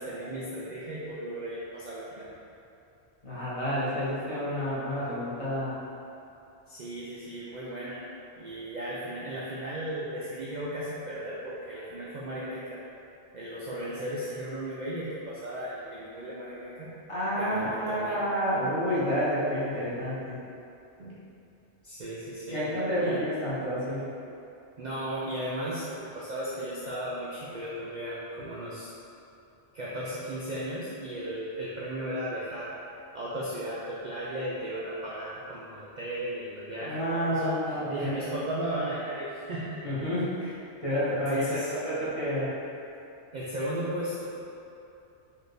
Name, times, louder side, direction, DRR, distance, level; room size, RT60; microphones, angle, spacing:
voice 1, 0.0-2.3 6.7-8.0 8.4-12.8 13.3-16.9 17.4-18.2 21.0-21.2 21.8-22.7 23.0-23.2 24.8-28.9 29.7-32.7 33.1-39.8 41.1-41.7 43.3-44.2, right 1 dB, 55° right, -8 dB, 0.5 m, -35 dB
voice 2, 3.2-5.8 17.1-20.4 22.5-24.1 36.8-38.3 39.8-42.5, equal, 30° left, -11 dB, 1.0 m, -29 dB
4.1 x 2.6 x 3.3 m, 2.7 s
omnidirectional pair, 1.2 m